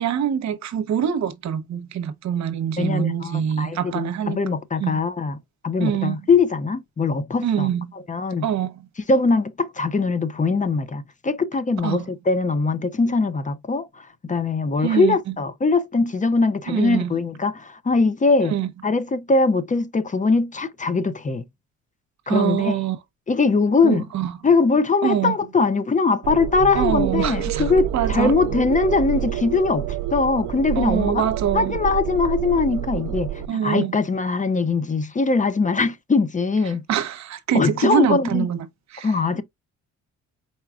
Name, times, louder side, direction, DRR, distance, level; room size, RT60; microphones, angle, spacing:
voice 1, 0.0-4.4 4.8-5.0 5.8-6.2 7.4-7.9 8.4-8.8 11.8-12.1 14.8-15.2 16.7-17.1 18.5-18.7 22.3-23.0 23.8-24.3 25.0-25.3 26.7-27.6 27.9-28.3 30.7-31.8 33.5-34.0 36.7-38.7 38.9-39.1, right 9 dB, 65° right, 0.9 m, -24 dB
voice 2, 2.8-5.4 5.6-7.7 8.1-8.4 9.1-18.5 18.8-21.4 22.3-22.8 23.3-24.0 24.4-31.2 31.5-36.8 37.5-38.5 39.0-39.4, left 4 dB, 25° left, 0.6 m, -21 dB
sound 1, 26.2-33.5, right 12 dB, 80° right, 0.5 m, -28 dB
4.7 x 4.2 x 2.4 m
cardioid pair, 90°, 30 cm